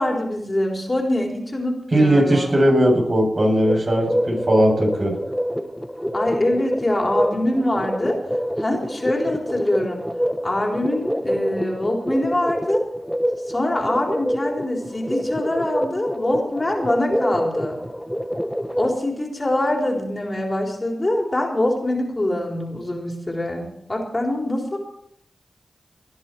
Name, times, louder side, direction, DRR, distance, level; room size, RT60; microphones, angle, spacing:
voice 1, 0.0-2.6 6.1-8.2 8.6-10.1 10.4-12.8 13.5-17.8 18.8-24.8, left 1 dB, 35° left, 1 dB, 3.8 m, -24 dB
voice 2, 1.9-5.2, right 1 dB, 50° right, 0 dB, 7.8 m, -18 dB
sound 1, 3.6-19.0, equal, ahead, 1.3 m, -27 dB
19.5 x 11.0 x 4.5 m, 0.74 s
cardioid pair, 40°, 0 cm